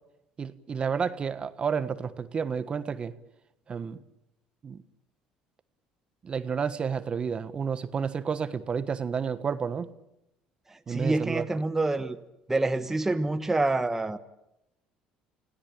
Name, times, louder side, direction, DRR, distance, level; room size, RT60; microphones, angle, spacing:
voice 1, 0.4-3.1 3.7-4.0 4.6-4.8 6.2-9.9 10.9-11.4, right 6 dB, 35° right, 12 dB, 1.4 m, -30 dB
voice 2, 10.9-12.2 12.5-14.2, right 2 dB, 15° right, 9 dB, 1.3 m, -27 dB
29.5 x 17.5 x 8.8 m, 0.86 s
supercardioid pair, 85°, 3 cm